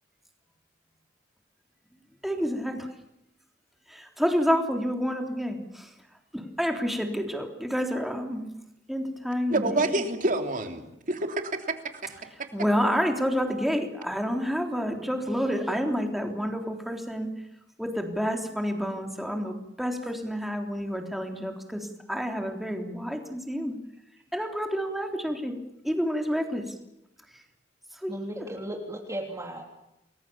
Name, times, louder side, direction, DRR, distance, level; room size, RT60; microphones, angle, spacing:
voice 1, 2.2-2.7 3.9-5.9 6.3-8.5 8.9-10.0 12.5-17.3 17.8-23.8 24.3-25.6 25.8-26.6 28.0-28.1 28.4-28.5, equal, ahead, 3 dB, 3.5 m, -29 dB
voice 2, 9.5-12.2, right 2 dB, 45° right, 6 dB, 3.2 m, -28 dB
voice 3, 28.1-29.7, right 1 dB, 15° right, 1 dB, 3.3 m, -35 dB
29.5 x 21.5 x 7.2 m, 0.86 s
head